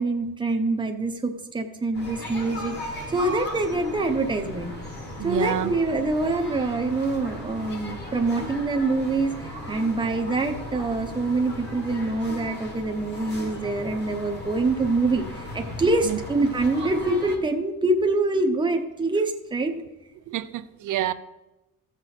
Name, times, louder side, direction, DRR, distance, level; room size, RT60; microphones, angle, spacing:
voice 1, 0.0-4.7 5.2-19.7, right 2 dB, 15° right, 0.8 m, -25 dB
sound 1, 1.9-17.4, left 1 dB, 30° left, 1.8 m, -37 dB
voice 2, 5.2-5.7 16.0-16.2 20.3-21.1, right 12 dB, 65° right, 0.6 m, -27 dB
15.5 x 6.0 x 4.1 m
cardioid pair, 175°, 33 cm